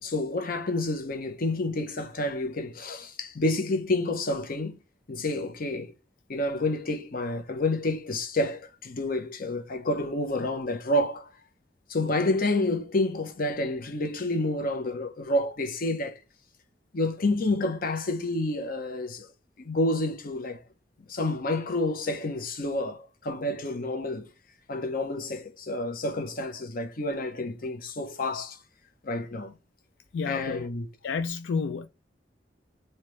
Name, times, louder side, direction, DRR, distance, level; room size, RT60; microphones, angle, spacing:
voice 1, 0.0-4.7 5.1-5.9 6.3-11.3 11.9-16.2 16.9-19.3 19.6-20.6 21.1-24.3 24.7-28.6 29.0-29.5 30.3-30.9, left 2 dB, 50° left, 0.8 m, -29 dB
voice 2, 30.1-30.6 31.0-31.9, left 5 dB, 85° left, 0.4 m, -30 dB
3.1 x 2.8 x 3.2 m
head